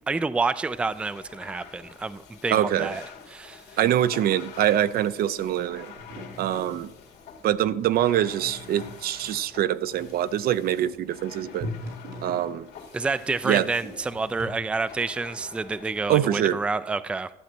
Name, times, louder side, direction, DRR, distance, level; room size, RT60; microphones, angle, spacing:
voice 1, 0.0-3.6 12.9-17.3, right 4 dB, 5° right, 14 dB, 0.3 m, -28 dB
sound 1, 0.6-16.3, left 7 dB, 75° left, 2.3 m, -47 dB
voice 2, 2.5-2.9 3.8-5.9 6.4-6.9 7.4-11.7 12.2-12.7 13.4-13.7 16.1-16.6, right 11 dB, 65° right, 15 dB, 0.5 m, -24 dB
sound 2, 6.0-14.5, equal, 85° right, 4.4 m, -42 dB
12.5 x 7.5 x 4.4 m, 0.88 s
cardioid pair, 110°, 17 cm